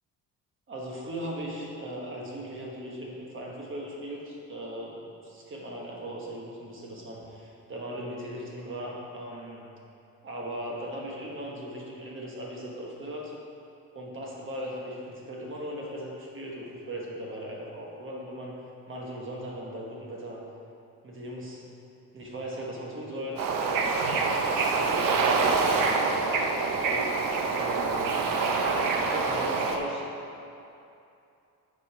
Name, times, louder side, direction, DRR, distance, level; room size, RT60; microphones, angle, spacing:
voice 1, 0.7-4.9 5.2-9.6 10.2-13.3 14.0-18.5 18.9-20.4 21.0-21.6 22.1-24.0 24.2-28.4 29.0-30.0, right 1 dB, 35° right, -3 dB, 1.1 m, -38 dB
Bird / Ocean, 23.4-29.8, right 4 dB, 65° right, 0.8 m, -26 dB
8.4 x 5.2 x 4.8 m, 2.6 s
cardioid pair, 170°, 36 cm